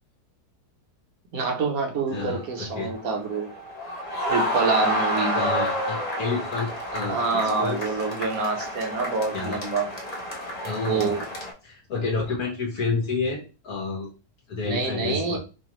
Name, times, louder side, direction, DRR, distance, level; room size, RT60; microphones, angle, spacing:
voice 1, 1.3-3.5 4.3-5.5 7.1-9.9 10.8-11.3 14.6-15.4, right 4 dB, 60° right, 2 dB, 1.3 m, -26 dB
voice 2, 2.1-2.9 5.3-7.8 9.3-9.6 10.6-11.1 11.6-14.1 14.5-15.4, left 4 dB, 65° left, -2 dB, 1.4 m, -29 dB
sound 1, 2.2-11.5, equal, 30° left, 0.8 m, -29 dB
4.9 x 2.3 x 3.0 m, 0.31 s
omnidirectional pair, 1.8 m